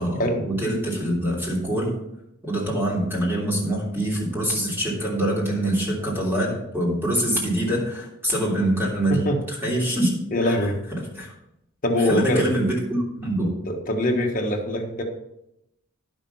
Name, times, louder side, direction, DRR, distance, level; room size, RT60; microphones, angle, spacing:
voice 1, 0.0-1.9 2.4-9.3 9.6-10.1 10.4-10.6 11.1-11.3 12.1-13.5, right 1 dB, 10° right, -4 dB, 3.1 m, -24 dB
voice 2, 9.1-9.4 10.3-10.8 11.8-12.5 13.7-15.0, left 1 dB, 40° left, 1 dB, 1.5 m, -23 dB
10.5 x 6.2 x 5.6 m, 0.83 s
head